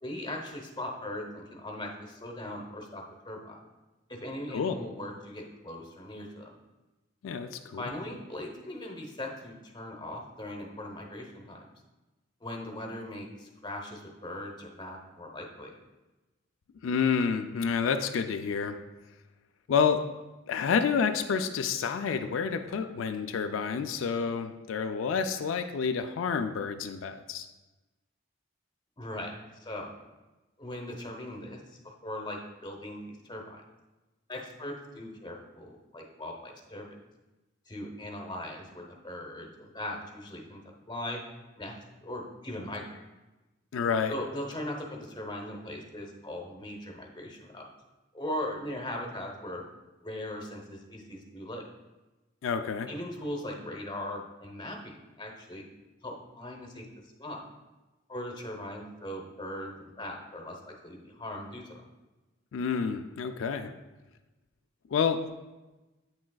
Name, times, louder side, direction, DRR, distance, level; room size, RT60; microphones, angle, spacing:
voice 1, 0.0-3.6 4.1-6.5 7.8-11.7 12.4-15.7 29.0-29.3 29.6-29.9 30.6-33.6 34.3-37.0 37.7-40.6 40.9-41.2 41.6-41.7 42.0-43.0 44.1-47.6 48.1-49.6 50.0-51.6 52.9-55.6 56.0-56.9 57.2-57.4 58.1-61.9, left 1 dB, 25° left, 0 dB, 0.9 m, -39 dB
voice 2, 7.2-7.9 16.8-18.8 19.7-20.1 20.5-27.5 43.7-44.1 52.4-52.9 62.5-63.7 64.9-65.2, left 6 dB, 90° left, 7 dB, 0.4 m, -29 dB
8.5 x 6.2 x 2.3 m, 1.1 s
head